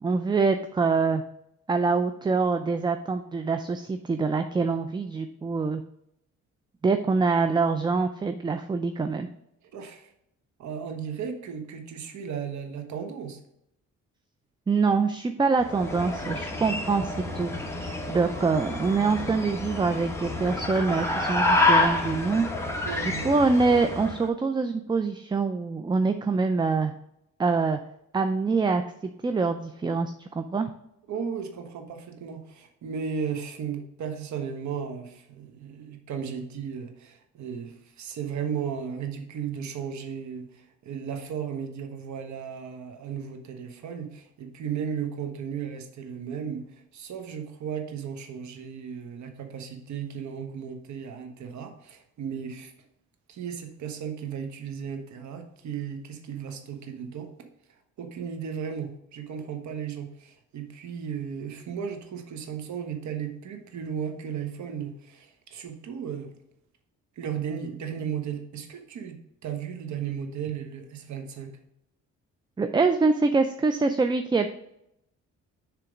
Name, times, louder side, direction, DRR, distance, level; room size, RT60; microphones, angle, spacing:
voice 1, 0.0-1.2 1.7-5.8 6.8-9.3 14.7-17.5 18.1-22.5 23.0-26.9 27.4-27.8 28.1-30.7 72.6-74.5, right 4 dB, 15° right, 8 dB, 0.3 m, -25 dB
voice 2, 9.7-10.1 10.6-13.4 22.8-23.3 31.1-52.7 53.3-57.3 57.7-66.3 67.2-69.2 69.4-71.5, right 7 dB, 70° right, 5 dB, 1.1 m, -35 dB
sound 1, 15.6-24.3, left 2 dB, 10° left, 1.1 m, -28 dB
6.9 x 3.4 x 4.9 m, 0.79 s
cardioid pair, 90°, 30 cm